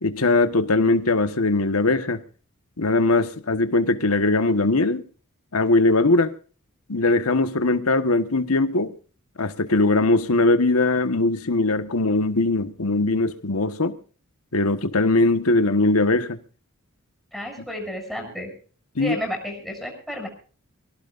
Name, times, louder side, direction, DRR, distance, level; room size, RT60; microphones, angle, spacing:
voice 1, 0.0-2.2 2.8-5.0 5.5-6.3 6.9-8.9 9.4-14.0 14.5-16.4 18.9-19.1, left 2 dB, 85° left, 1.4 m, -20 dB
voice 2, 17.3-18.5 19.0-20.3, left 1 dB, ahead, 7.3 m, -31 dB
24.5 x 18.0 x 2.6 m
head